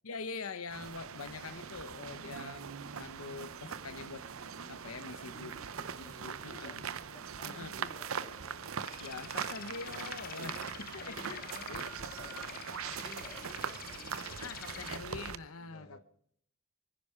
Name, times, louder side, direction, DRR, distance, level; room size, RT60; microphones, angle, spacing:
voice 1, 0.0-4.3 4.7-5.6 6.0-6.9 7.4-7.9 9.0-11.4 11.7-11.9 14.4-16.0, left 4 dB, 80° left, 1.0 m, -44 dB
sound 1, 0.7-15.4, right 7 dB, 70° right, 0.7 m, -41 dB
voice 2, 5.3-8.8 10.3-14.8 15.6-16.0, left 1 dB, 25° left, 3.1 m, -55 dB
sound 2, 8.8-15.0, left 10 dB, 45° left, 0.6 m, -47 dB
23.5 x 10.5 x 5.0 m
head